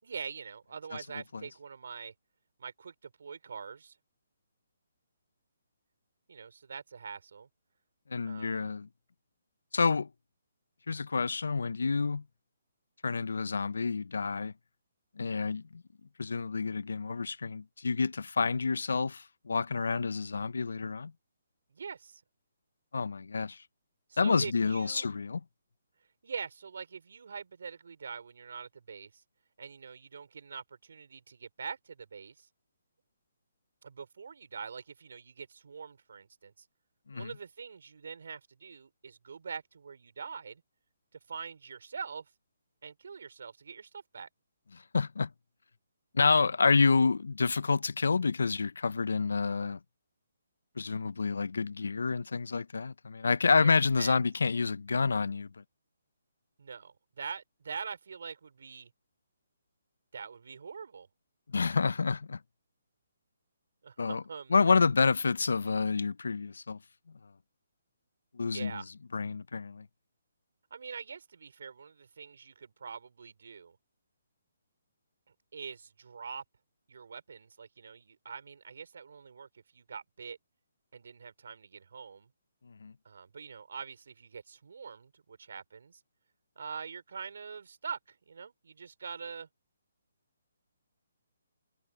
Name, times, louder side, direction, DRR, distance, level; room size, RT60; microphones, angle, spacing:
voice 1, 0.0-2.1 2.6-4.0 6.3-7.5 8.3-8.7 21.7-22.2 24.1-25.1 26.2-29.2 29.6-32.5 33.8-36.7 37.1-40.6 41.3-42.3 42.8-44.3 53.6-53.7 54.0-54.2 56.6-58.9 60.1-61.1 63.8-64.5 68.4-68.9 70.7-73.8 75.5-76.4 76.9-80.4 80.9-82.3 83.0-86.0 86.6-89.5, right 6 dB, 70° right, 4.4 m, -44 dB
voice 2, 8.1-8.9 9.7-10.1 10.9-12.2 13.0-14.5 15.2-15.8 16.2-21.1 22.9-23.6 24.2-25.4 37.1-37.3 44.7-45.3 46.1-49.8 50.8-55.6 61.5-62.4 64.0-64.2 64.5-66.8 68.3-68.8 69.1-69.9 82.6-82.9, left 4 dB, 80° left, 0.7 m, -28 dB
hypercardioid pair, 155°, 0 cm